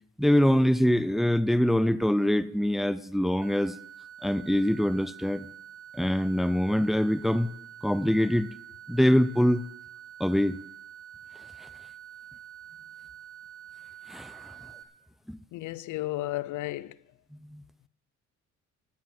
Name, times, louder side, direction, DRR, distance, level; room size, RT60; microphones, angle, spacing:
voice 1, 0.2-3.8 4.2-5.5 5.9-7.5 7.8-8.5 8.9-9.6 10.2-10.6 11.6-11.7 14.1-14.5 15.3-15.4 17.4-17.6, equal, ahead, 0.5 m, -24 dB
sound 1, 3.4-14.8, right 10 dB, 70° right, 1.2 m, -47 dB
voice 2, 15.5-17.0, left 16 dB, 80° left, 0.6 m, -33 dB
14.5 x 7.3 x 7.5 m
cardioid pair, 90°, 30 cm